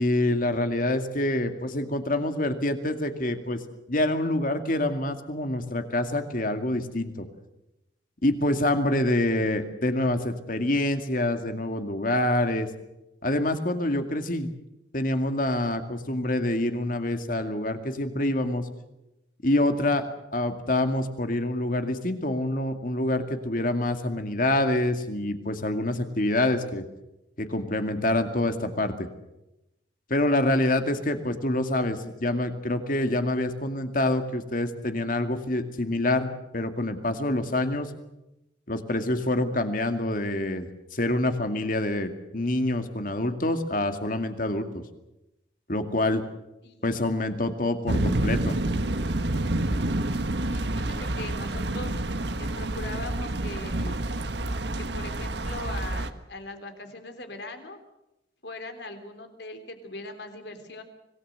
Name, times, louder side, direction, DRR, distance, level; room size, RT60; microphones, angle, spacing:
voice 1, 0.0-3.6 3.9-7.3 8.2-12.7 13.2-14.5 14.9-18.7 19.4-26.8 27.4-29.1 30.1-37.9 38.7-44.7 45.7-46.2 46.8-48.6, left 1 dB, 50° left, 7 dB, 2.2 m, -26 dB
sound 1, 47.9-56.1, right 1 dB, 70° right, 1.4 m, -28 dB
voice 2, 50.5-52.0 52.4-54.0 54.8-57.8 58.4-60.8, left 2 dB, 65° left, 7 dB, 3.6 m, -40 dB
25.5 x 19.0 x 8.1 m, 0.93 s
head